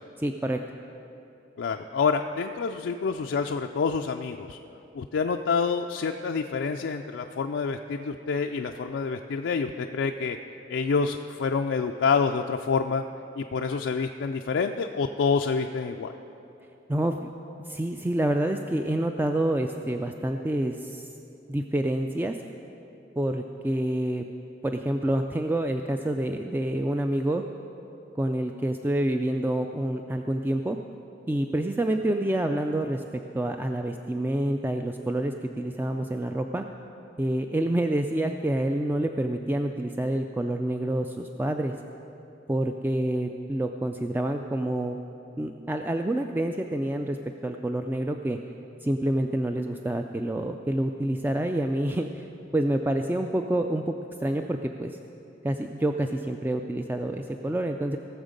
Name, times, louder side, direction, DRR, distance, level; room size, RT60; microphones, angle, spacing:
voice 1, 0.2-0.6 16.9-17.3 17.7-21.1 21.5-22.4 23.2-24.2 24.6-27.4 28.2-30.8 31.3-36.6 37.2-41.8 42.5-45.0 45.4-47.2 47.4-48.4 48.8-52.3 52.5-53.9 54.2-55.0 55.4-58.0, right 1 dB, 10° right, 5 dB, 0.3 m, -27 dB
voice 2, 1.6-4.6 4.9-10.4 10.7-13.0 13.4-16.1, left 5 dB, 80° left, 4 dB, 0.4 m, -27 dB
18.0 x 7.1 x 5.2 m, 2.8 s
head